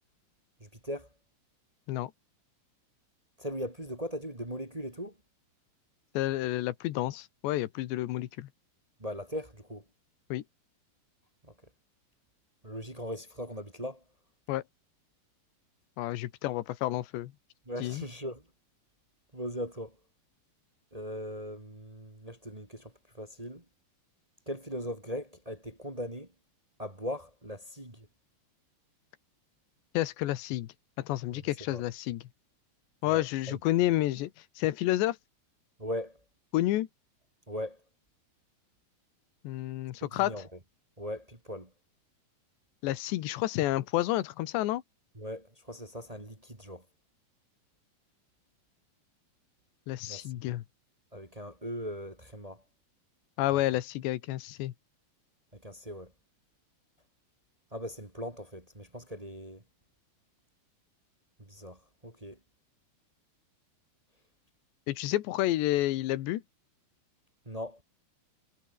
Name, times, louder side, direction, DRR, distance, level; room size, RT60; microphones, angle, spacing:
voice 1, 0.6-1.1 3.4-5.1 9.0-9.8 11.4-11.5 12.6-14.0 17.6-18.4 19.3-19.9 20.9-23.6 24.4-26.3 26.8-28.1 31.3-31.4 31.7-31.8 33.1-33.6 35.8-36.2 37.5-37.8 40.0-40.5 41.0-41.7 45.2-46.8 50.1-50.2 51.1-52.6 53.5-53.6 55.5-56.1 57.7-59.6 61.5-62.4 67.4-67.8, equal, 15° right, 1.5 m, -39 dB
voice 2, 6.2-8.5 10.3-10.4 14.5-14.6 16.0-17.3 17.8-18.1 30.0-30.7 31.0-32.2 33.0-34.3 34.6-35.2 36.5-36.9 39.5-40.3 42.8-44.8 49.9-50.6 53.4-54.7 64.9-66.4, left 15 dB, 80° left, 3.5 m, -30 dB
omnidirectional pair, 5.0 m